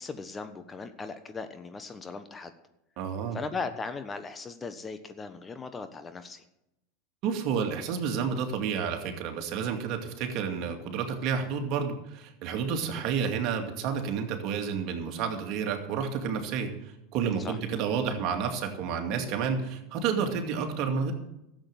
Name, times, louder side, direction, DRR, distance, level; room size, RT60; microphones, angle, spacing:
voice 1, 0.0-2.5 3.3-6.4 12.8-13.0 17.4-17.6, left 4 dB, 20° left, 9 dB, 1.1 m, -38 dB
voice 2, 3.0-3.4 7.2-21.1, right 6 dB, 55° right, 4 dB, 2.3 m, -30 dB
13.0 x 7.8 x 7.7 m, 0.86 s
hypercardioid pair, 100°, 0 cm